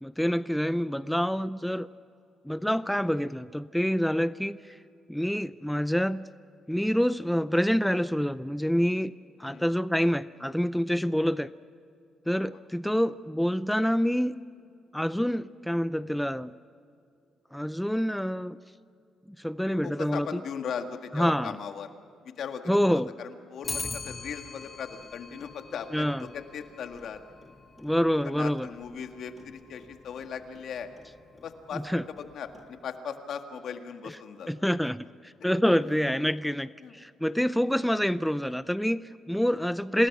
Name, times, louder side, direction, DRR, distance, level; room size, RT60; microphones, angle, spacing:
voice 1, 0.0-1.9 2.4-4.8 5.1-6.2 6.7-9.1 9.4-11.5 12.3-14.4 14.9-16.5 17.5-18.6 19.4-20.4 21.1-21.5 22.7-23.1 25.9-26.3 27.8-28.7 31.9-32.0 34.5-40.1, equal, ahead, 14 dB, 0.5 m, -27 dB
voice 2, 19.8-21.9 22.2-27.2 28.2-30.9 31.4-34.5 35.8-35.9 36.8-37.0 39.6-39.7, left 7 dB, 65° left, 6 dB, 1.9 m, -38 dB
Clock, 23.6-33.0, left 3 dB, 25° left, 1.9 m, -44 dB
27.5 x 20.0 x 6.1 m, 2.5 s
cardioid pair, 90°, 0 cm